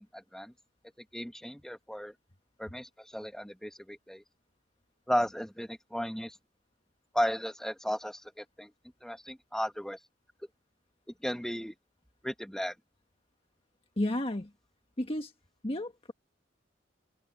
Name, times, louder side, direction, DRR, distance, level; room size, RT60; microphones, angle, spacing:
voice 1, 0.1-0.5 1.1-2.1 2.6-4.2 5.1-6.4 7.1-8.7 9.0-10.0 11.2-11.7 12.2-12.7, equal, 5° left, 2.4 m, -34 dB
voice 2, 14.0-14.5 15.0-15.3 15.6-16.1, left 1 dB, 30° left, 1.5 m, -32 dB
open air
head